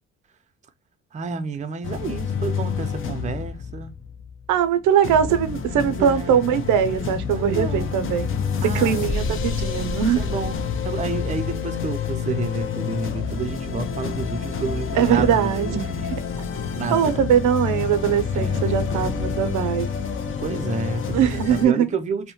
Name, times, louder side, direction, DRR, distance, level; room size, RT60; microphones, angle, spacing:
voice 1, 1.1-3.9 5.8-6.6 7.3-8.1 8.6-9.3 10.2-10.5 10.8-16.0 16.7-17.2 18.3-19.2 20.2-22.3, right 4 dB, 25° right, 0.4 m, -30 dB
sound 1, 1.8-4.6 5.0-21.7, left 6 dB, 45° left, 0.5 m, -28 dB
voice 2, 4.5-8.4 8.6-10.2 14.9-16.2 16.9-19.9 21.1-21.9, right 9 dB, 85° right, 0.5 m, -21 dB
2.7 x 2.1 x 2.8 m
cardioid pair, 90°, 30 cm